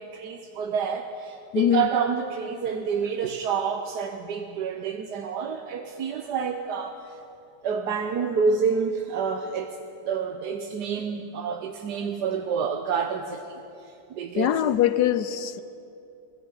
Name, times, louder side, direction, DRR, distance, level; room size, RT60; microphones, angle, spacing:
voice 1, 0.0-7.0 7.6-9.8 10.1-13.6 14.1-14.6, right 6 dB, 60° right, 1.4 m, -28 dB
voice 2, 1.5-1.9 14.4-15.6, left 11 dB, 70° left, 1.0 m, -22 dB
21.0 x 13.5 x 9.9 m
omnidirectional pair, 2.2 m